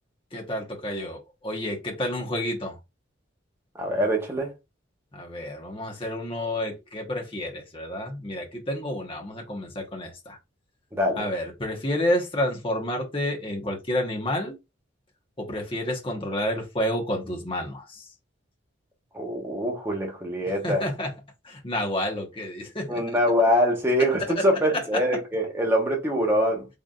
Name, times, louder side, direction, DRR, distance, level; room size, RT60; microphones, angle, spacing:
voice 1, 0.3-2.8 5.1-10.4 11.2-14.6 15.4-18.0 20.6-21.1 21.4-23.0 24.4-24.5 24.7-24.8, left 1 dB, 25° left, 1.1 m, -30 dB
voice 2, 3.7-4.5 10.9-11.3 19.1-20.8 22.9-26.7, equal, 10° right, 1.1 m, -24 dB
4.0 x 3.4 x 2.4 m
head